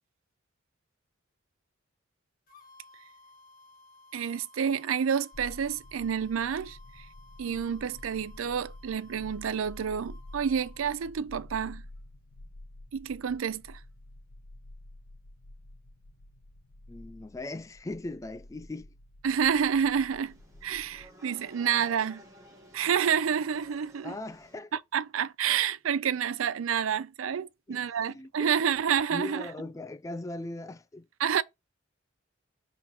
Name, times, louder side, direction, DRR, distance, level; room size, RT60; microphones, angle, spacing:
sound 1, 2.5-11.1, left 2 dB, 45° left, 1.7 m, -57 dB
voice 1, 4.1-7.1 7.4-11.8 12.9-13.8 19.2-20.4 20.6-22.2 22.7-24.1 24.9-29.5 31.2-31.4, right 7 dB, 85° right, 0.5 m, -29 dB
sound 2, 5.3-21.1, left 1 dB, 90° left, 0.7 m, -49 dB
voice 2, 16.9-18.9 24.0-24.7 27.7-28.5 29.1-31.1, left 2 dB, 15° left, 0.3 m, -39 dB
sound 3, 19.2-24.6, equal, 15° right, 1.5 m, -54 dB
5.4 x 3.9 x 5.9 m
head